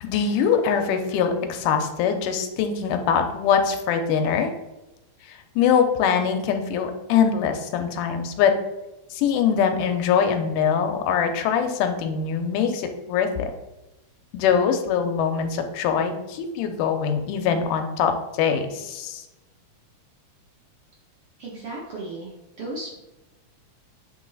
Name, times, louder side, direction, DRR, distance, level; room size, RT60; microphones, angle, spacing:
voice 1, 0.0-4.5 5.3-8.6 9.1-13.5 14.3-19.2, left 7 dB, 90° left, 6 dB, 2.2 m, -23 dB
voice 2, 21.4-22.3 22.6-23.0, right 2 dB, 65° right, -4 dB, 1.4 m, -34 dB
8.0 x 3.1 x 3.9 m, 0.99 s
omnidirectional pair, 3.7 m